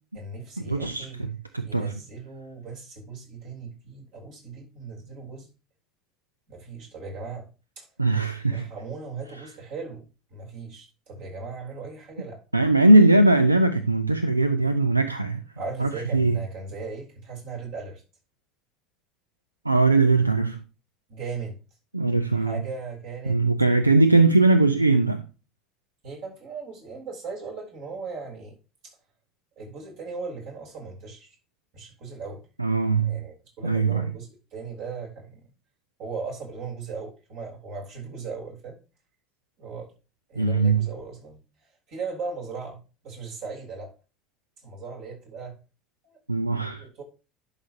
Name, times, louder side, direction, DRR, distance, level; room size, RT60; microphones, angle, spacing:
voice 1, 0.1-1.2 1.6-5.5 6.5-7.5 7.8-7.9 8.5-12.4 15.6-18.0 21.1-21.6 22.3-23.4 26.0-28.6 28.8-29.0 29.6-31.4 31.7-32.5 33.0-35.5 36.0-38.8 39.6-39.9 40.3-41.4 41.9-43.9 44.6-45.6 46.0-46.2 46.8-47.0, right 4 dB, 55° right, 3.6 m, -38 dB
voice 2, 0.7-1.9 8.0-8.7 12.5-15.4 15.8-16.4 19.6-20.6 21.9-22.6 23.3-25.2 32.6-33.2 33.6-34.1 40.4-40.9 46.3-46.9, right 2 dB, 90° right, 0.4 m, -20 dB
11.0 x 5.8 x 2.7 m
figure-of-eight pair, 65°, 0 cm